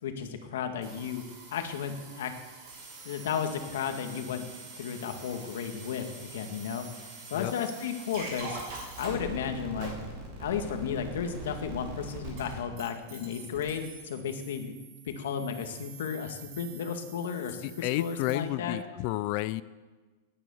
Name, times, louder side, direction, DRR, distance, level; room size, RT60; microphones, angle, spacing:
voice 1, 0.0-1.2 1.5-2.3 3.0-4.5 4.8-9.9 10.4-14.7 15.1-18.8, left 7 dB, 70° left, 5 dB, 2.1 m, -34 dB
sound 1, 0.8-18.3, right 3 dB, 35° right, 4.3 m, -44 dB
voice 2, 17.6-19.6, left 16 dB, 35° left, 15 dB, 0.4 m, -31 dB
18.5 x 9.4 x 7.2 m, 1.3 s
supercardioid pair, 175°, 0 cm